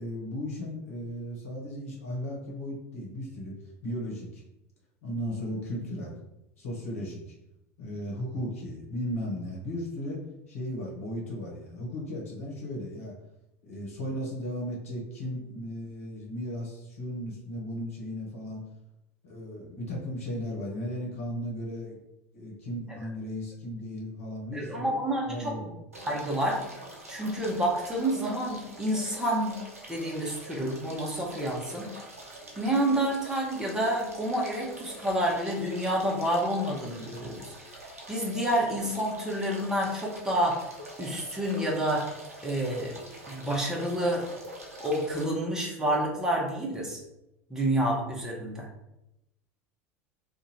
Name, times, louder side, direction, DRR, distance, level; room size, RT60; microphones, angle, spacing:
voice 1, 0.0-4.4 5.0-6.2 6.6-7.3 7.8-13.2 13.6-18.6 19.2-22.0 22.3-24.9 25.3-25.6, equal, 75° left, -2 dB, 1.2 m, -36 dB
voice 2, 24.5-25.7 26.1-26.6 27.1-29.6 29.9-31.9 32.6-37.5 38.1-40.7 41.0-42.1 42.4-42.9 43.3-44.3 44.8-47.0 47.5-48.7, right 1 dB, 5° right, -2 dB, 1.1 m, -29 dB
sound 1, 25.9-45.3, right 1 dB, 85° right, 0.7 m, -45 dB
2.7 x 2.6 x 4.2 m, 0.90 s
figure-of-eight pair, 75°, 8 cm